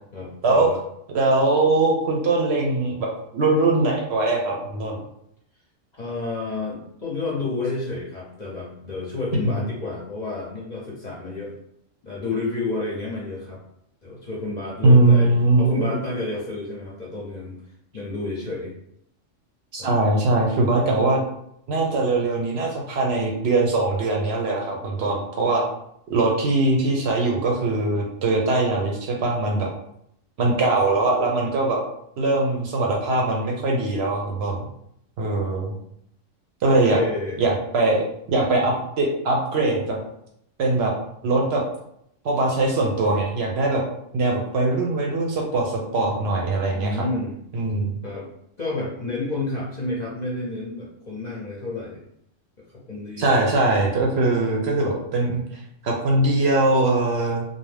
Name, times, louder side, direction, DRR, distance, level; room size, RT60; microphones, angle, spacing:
voice 1, 0.1-0.8 6.0-11.5 12.0-13.6 14.0-17.6 17.9-18.7 19.8-19.9 25.0-25.1 25.4-25.5 36.7-37.4 46.7-47.4 48.0-48.3 48.6-52.0 52.9-53.5, left 2 dB, 45° left, -5 dB, 0.6 m, -30 dB
voice 2, 1.1-5.0 9.4-9.6 14.8-16.0 19.7-21.2 21.7-25.6 26.1-29.7 30.4-31.8 32.2-34.6 35.2-35.7 36.6-37.0 37.4-40.0 40.6-40.9 41.2-41.6 42.2-43.8 44.1-47.0 47.5-48.0 53.2-57.4, right 2 dB, 65° right, -1 dB, 0.7 m, -21 dB
2.6 x 2.1 x 3.2 m, 0.73 s
omnidirectional pair, 1.3 m